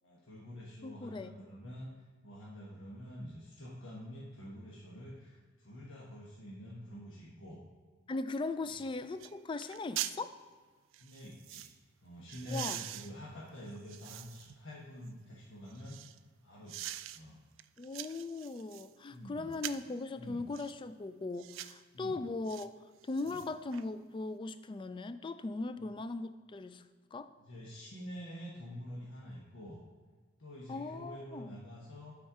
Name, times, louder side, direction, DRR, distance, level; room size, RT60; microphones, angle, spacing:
voice 1, 0.0-1.9 2.2-7.6 8.6-8.8 10.9-11.7 12.0-16.0 16.4-17.4 19.1-19.6 20.2-20.4 21.9-22.2 23.2-23.4 25.8-25.9 27.4-29.8 30.4-32.2, equal, 85° left, -5 dB, 1.3 m, -47 dB
voice 2, 0.8-1.3 8.1-10.3 12.4-12.8 17.8-22.7 23.1-26.8 27.1-27.3 30.7-31.5, left 3 dB, 25° left, 12 dB, 0.3 m, -39 dB
sound 1, 8.7-8.8 9.2-9.3 9.6-10.2 10.9-11.7 12.3-14.6 15.1-16.2 16.7-17.2 17.6-18.9 19.5-19.9 20.5-20.8 21.4-21.8 22.5-22.7 23.0-23.8 24.2-24.3, right 14 dB, 80° right, 0.3 m, -43 dB
8.6 x 4.4 x 4.8 m, 1.5 s
head